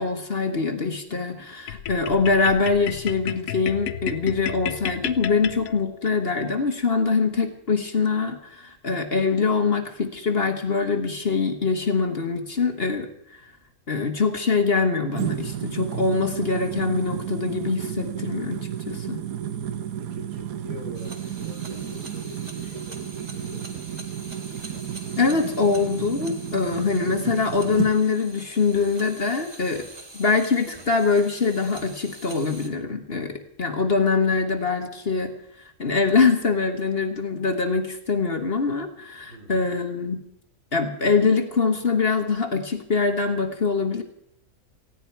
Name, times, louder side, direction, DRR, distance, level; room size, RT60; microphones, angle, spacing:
voice 1, 0.0-13.5 13.9-18.6 18.9-19.2 25.2-29.9 30.1-35.3 35.8-40.2 40.7-44.0, left 4 dB, 45° left, 6 dB, 1.6 m, -23 dB
sound 1, 1.7-6.1, left 10 dB, 80° left, 1.2 m, -33 dB
sound 2, 15.1-27.9, right 10 dB, 80° right, 1.4 m, -32 dB
voice 2, 20.1-23.6 39.3-39.7, equal, 65° right, -1 dB, 5.8 m, -44 dB
sound 3, 20.9-32.7, right 2 dB, 30° right, 1.9 m, -44 dB
19.0 x 16.0 x 4.6 m, 0.74 s
omnidirectional pair, 1.5 m